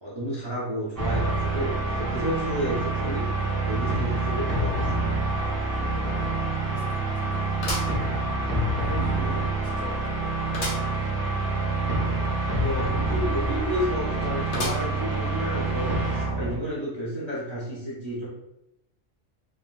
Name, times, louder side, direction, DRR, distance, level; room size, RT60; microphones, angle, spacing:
voice 1, 0.0-5.1 12.0-18.3, equal, 30° right, -7 dB, 0.5 m, -31 dB
sound 1, 1.0-16.6, right 2 dB, 50° right, 0.9 m, -27 dB
voice 2, 5.3-8.0 8.8-10.8, equal, 35° left, -8 dB, 0.9 m, -41 dB
sound 2, 5.4-5.5 5.9-6.0 7.6-8.7 9.2-9.3 10.5-10.9 11.4-11.5 11.7-11.8 14.5-15.1 15.7-15.8 16.8-16.9, left 2 dB, 65° left, 1.0 m, -33 dB
3.4 x 2.3 x 2.3 m, 0.86 s
omnidirectional pair, 1.3 m